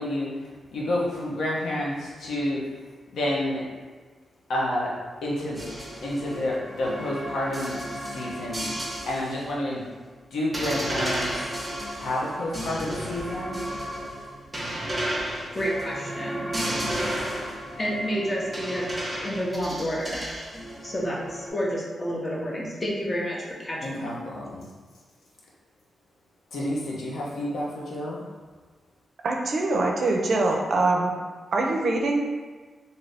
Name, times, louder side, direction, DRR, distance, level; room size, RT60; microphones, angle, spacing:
voice 1, 0.0-2.6 3.1-3.7 4.5-4.9 5.2-5.6 6.0-8.7 9.0-9.8 10.3-11.3 11.9-13.7 23.8-24.7 26.5-28.2, left 1 dB, 85° left, -4 dB, 0.7 m, -29 dB
sound 1, 5.5-9.4 9.8-9.9 10.5-21.5, right 1 dB, 15° right, 0.7 m, -33 dB
voice 2, 15.5-16.5 17.8-20.2 20.8-24.2, equal, 25° left, -3 dB, 0.7 m, -30 dB
voice 3, 29.2-31.1 31.5-32.2, right 2 dB, 60° right, 1 dB, 0.4 m, -23 dB
2.6 x 2.6 x 3.3 m, 1.4 s
wide cardioid pair, 110°, 0 cm